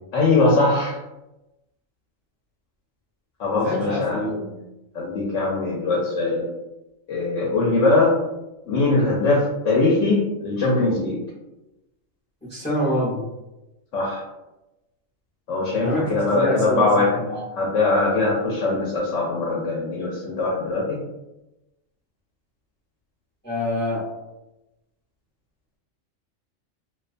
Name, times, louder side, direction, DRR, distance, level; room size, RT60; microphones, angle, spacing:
voice 1, 0.1-1.0 3.4-4.2 4.9-6.5 7.1-8.2 8.7-11.2 13.9-14.2 15.5-17.2 17.6-21.0, left 3 dB, 75° left, -4 dB, 0.9 m, -21 dB
voice 2, 3.6-4.6 12.5-13.2 15.8-17.4 23.4-24.0, equal, 10° left, -6 dB, 0.5 m, -26 dB
2.4 x 2.3 x 2.4 m, 0.98 s
omnidirectional pair, 1.3 m